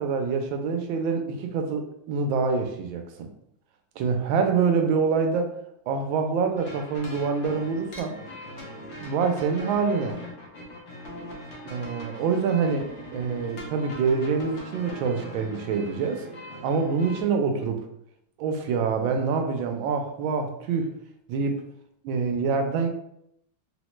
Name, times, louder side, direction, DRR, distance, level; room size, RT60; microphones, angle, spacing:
voice 1, 0.0-3.3 4.0-5.6 5.9-8.2 9.0-10.2 11.6-16.2 16.6-17.9 18.4-20.9 21.3-21.6 22.0-22.9, right 5 dB, 85° right, 4 dB, 1.3 m, -26 dB
sound 1, 6.6-17.2, left 1 dB, 70° left, 0.6 m, -41 dB
3.7 x 2.1 x 2.9 m, 0.73 s
omnidirectional pair, 2.1 m